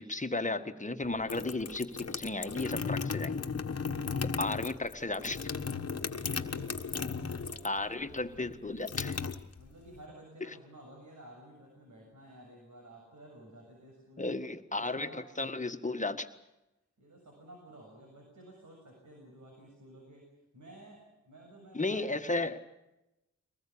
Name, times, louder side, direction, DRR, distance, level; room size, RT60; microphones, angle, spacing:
voice 1, 0.0-1.9 2.2-3.3 4.2-5.4 7.6-9.2 14.2-16.3 21.7-22.6, left 2 dB, 25° left, 8 dB, 1.6 m, -34 dB
sound 1, 1.0-7.8 8.1-10.0, left 5 dB, 55° left, 1.4 m, -35 dB
voice 2, 6.1-8.9 9.6-14.4 14.8-15.2 17.0-20.3 20.5-22.3, right 1 dB, 75° right, 0 dB, 7.1 m, -53 dB
23.5 x 20.0 x 8.7 m, 0.95 s
wide cardioid pair, 75°, 30 cm